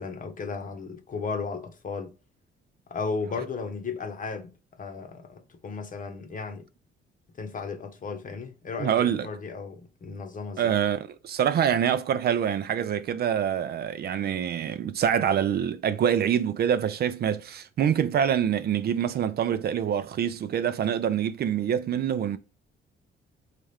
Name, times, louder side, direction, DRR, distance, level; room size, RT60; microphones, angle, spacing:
voice 1, 0.0-2.1 2.9-6.7 7.4-10.7, left 4 dB, 40° left, 0.9 m, -35 dB
voice 2, 8.8-9.3 10.6-22.4, right 9 dB, 55° right, 0.4 m, -25 dB
4.2 x 2.4 x 3.3 m
cardioid pair, 90°, 20 cm